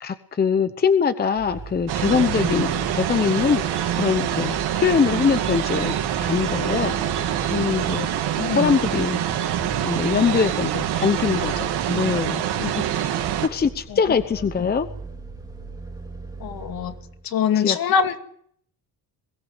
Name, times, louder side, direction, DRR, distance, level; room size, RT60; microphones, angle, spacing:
voice 1, 0.0-3.6 3.9-6.9 7.5-8.1 8.5-9.2 9.8-13.1 13.4-14.9 17.6-17.8, left 6 dB, 25° left, 11 dB, 0.9 m, -23 dB
Vehicle, 1.3-17.3, right 3 dB, 10° right, 2.4 m, -39 dB
sound 1, 1.9-13.5, right 10 dB, 85° right, 3.4 m, -25 dB
voice 2, 8.4-8.7 13.9-14.0 16.4-16.9 17.2-18.2, left 7 dB, 60° left, 7 dB, 2.4 m, -23 dB
22.0 x 17.5 x 8.1 m, 0.64 s
cardioid pair, 145°, 39 cm